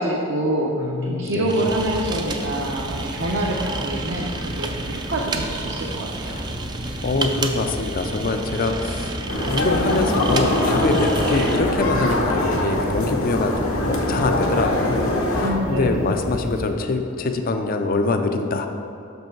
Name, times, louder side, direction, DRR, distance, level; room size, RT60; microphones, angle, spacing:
voice 1, 0.0-6.4 15.4-16.0, right 1 dB, 60° right, -2 dB, 0.7 m, -26 dB
voice 2, 0.8-1.8 7.0-9.2 9.5-18.7, left 3 dB, 45° left, 6 dB, 0.4 m, -24 dB
sound 1, 1.5-11.6, right 3 dB, 20° right, 0.3 m, -32 dB
sound 2, 1.7-16.7, equal, 75° right, 1.7 m, -33 dB
sound 3, 9.3-15.5, left 1 dB, 80° left, 1.0 m, -23 dB
6.2 x 5.4 x 4.5 m, 2.6 s
head